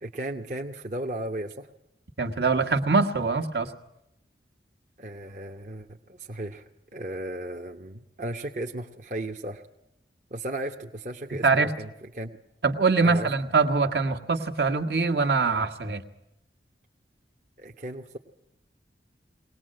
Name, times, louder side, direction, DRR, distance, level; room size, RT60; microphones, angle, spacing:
voice 1, 0.0-1.7 5.0-6.6 6.9-9.6 10.3-11.9 12.1-12.4 13.0-13.3 17.6-18.2, right 1 dB, 45° right, 2 dB, 1.0 m, -35 dB
voice 2, 2.2-3.7 11.4-11.7 12.6-16.0, right 4 dB, 70° right, 7 dB, 1.6 m, -23 dB
22.0 x 19.0 x 7.7 m, 0.85 s
head